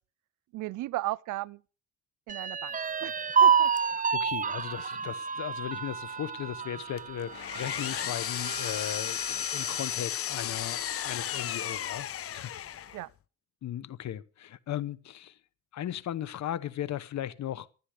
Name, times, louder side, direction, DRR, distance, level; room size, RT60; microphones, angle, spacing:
voice 1, 0.5-1.6 2.3-3.1 3.4-3.7 12.9-13.1, right 17 dB, 85° right, 0.6 m, -35 dB
sound 1, 2.3-9.9 10.4-10.5 10.9-11.5, right 7 dB, 25° right, 0.7 m, -29 dB
voice 2, 3.8-12.5 13.6-15.4 15.7-17.7, left 11 dB, 65° left, 1.2 m, -37 dB
Power tool, 7.0-13.1, left 10 dB, 50° left, 0.6 m, -34 dB
17.0 x 11.5 x 5.0 m
cardioid pair, 90°, 30 cm